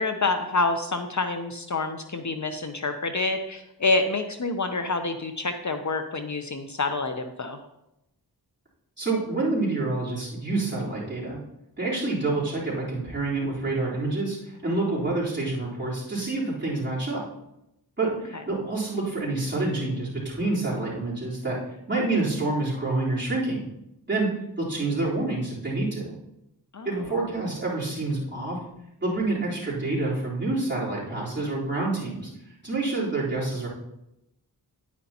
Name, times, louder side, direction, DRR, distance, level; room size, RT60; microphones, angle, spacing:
voice 1, 0.0-7.6 26.7-26.9, left 3 dB, 50° left, 7 dB, 0.7 m, -27 dB
voice 2, 9.0-11.4 11.8-17.3 18.0-21.6 21.9-23.6 24.1-24.3 24.6-26.1 26.8-28.6 29.0-32.3 32.6-33.7, right 2 dB, 30° right, -7 dB, 3.7 m, -27 dB
10.0 x 9.4 x 2.9 m, 0.85 s
wide cardioid pair, 85°, 38 cm